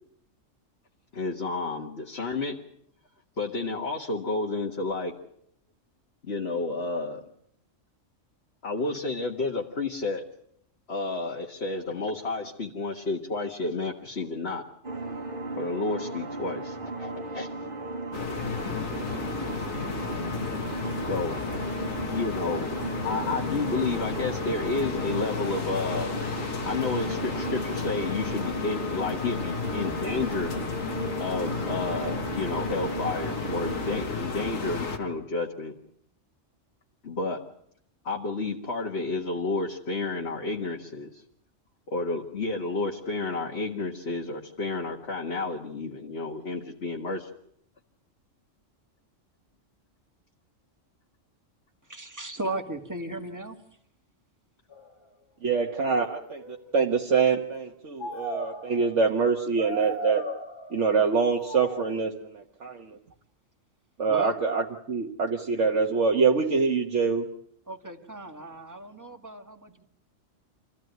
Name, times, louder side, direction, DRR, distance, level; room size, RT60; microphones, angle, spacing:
voice 1, 1.1-2.6 3.4-5.1 6.2-7.2 8.6-10.2 10.9-14.6 15.5-17.5 19.1-19.2 19.4-19.6 21.1-21.4 22.1-22.7 23.0-26.1 26.6-30.5 31.2-35.7 37.0-37.4 38.0-41.2 41.9-47.3, left 3 dB, 55° left, 0 dB, 2.0 m, -31 dB
sound 1, 14.8-34.1, right 2 dB, 40° right, 1.9 m, -36 dB
sound 2, 18.1-35.0, left 5 dB, 85° left, 2.3 m, -33 dB
voice 2, 51.9-53.6 64.1-64.4 67.7-69.8, right 2 dB, 15° right, 5 dB, 2.0 m, -36 dB
sound 3, 54.7-54.9 55.8-57.1 58.0-59.0 59.6-60.9 61.3-61.9, right 1 dB, 20° left, 1.5 m, -37 dB
voice 3, 55.4-56.4 56.7-60.2 60.7-62.8 64.0-67.3, right 5 dB, 65° right, 1 dB, 1.7 m, -25 dB
26.5 x 15.5 x 9.4 m, 0.71 s
omnidirectional pair, 1.3 m